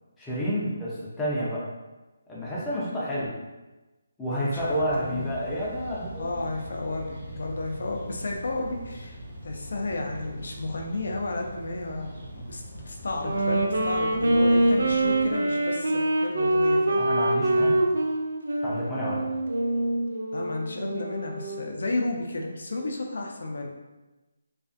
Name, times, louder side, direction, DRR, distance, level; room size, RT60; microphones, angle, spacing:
voice 1, 0.2-1.7 2.3-3.4 4.2-6.4 16.9-17.8 18.6-19.3, equal, 5° left, -8 dB, 0.5 m, -29 dB
voice 2, 4.3-5.3 6.2-9.2 9.4-17.0 20.3-23.7, left 2 dB, 70° left, 1 dB, 0.5 m, -32 dB
sound 1, 4.5-15.3, right 1 dB, 25° right, 0.8 m, -42 dB
Wind instrument woodwind instrument, 13.1-21.8, right 1 dB, 75° right, 0.4 m, -25 dB
2.4 x 2.3 x 2.5 m, 1.1 s
hypercardioid pair, 160°, 0 cm